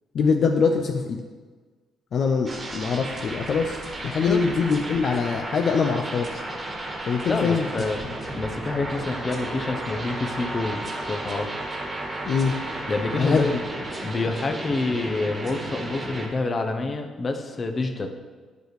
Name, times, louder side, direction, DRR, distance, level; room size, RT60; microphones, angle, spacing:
voice 1, 0.1-1.2 2.1-6.4 7.1-7.7 12.2-12.6 13.1-13.5, left 5 dB, 60° left, 4 dB, 0.5 m, -23 dB
sound 1, 2.5-16.3, right 1 dB, 35° right, 1.4 m, -33 dB
voice 2, 7.3-8.0 8.4-10.8 11.1-11.6 12.9-13.5 14.0-18.1, left 3 dB, 35° left, 5 dB, 0.8 m, -27 dB
9.0 x 5.0 x 3.2 m, 1.4 s
cardioid pair, 85°, 0 cm